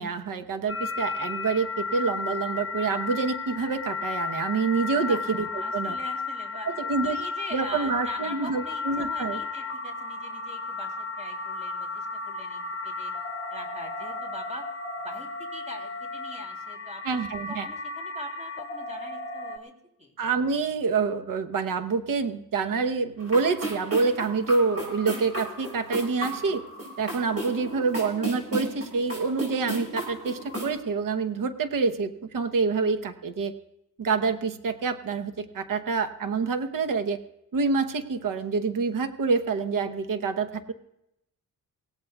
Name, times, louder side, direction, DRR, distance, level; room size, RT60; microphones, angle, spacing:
voice 1, 0.0-6.0 6.7-7.2 7.5-9.4 17.0-17.7 20.2-26.6 27.0-33.5 34.0-37.2 37.5-40.7, right 4 dB, 75° right, 10 dB, 1.0 m, -27 dB
sound 1, 0.7-19.6, left 4 dB, 40° left, 0.9 m, -34 dB
voice 2, 5.6-6.7 7.0-13.1 13.5-14.7 15.0-17.2 17.5-19.7 20.0-20.1, left 1 dB, 20° right, 1 dB, 3.2 m, -42 dB
sound 2, 23.2-30.7, right 1 dB, 45° right, 7.5 m, -34 dB
23.5 x 17.0 x 2.3 m, 0.83 s
cardioid pair, 80°, 33 cm